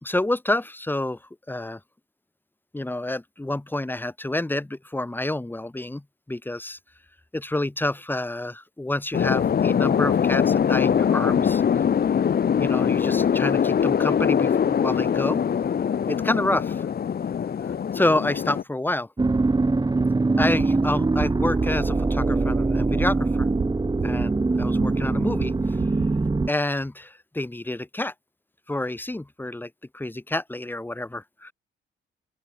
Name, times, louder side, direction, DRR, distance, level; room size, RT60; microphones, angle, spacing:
voice 1, 0.0-1.2 1.5-1.8 2.7-6.8 7.3-11.6 12.6-15.4 16.1-16.9 17.9-19.1 20.4-23.5 24.0-25.8 26.5-28.1 28.7-31.5, left 1 dB, 10° left, 2.1 m, -28 dB
sound 1, 9.1-18.6, left 8 dB, 50° left, 3.0 m, -22 dB
sound 2, 19.2-26.5, right 3 dB, 20° right, 3.3 m, -23 dB
sound 3, 20.0-20.1 20.4-20.7 21.0-21.3 21.6-21.9 22.2-22.5 22.8-23.1 23.4-23.7 24.0-24.3 24.6-24.9 25.2-25.5 25.8-26.1 26.4-26.5, right 7 dB, 50° right, 5.8 m, -32 dB
open air
cardioid pair, 90°, 20 cm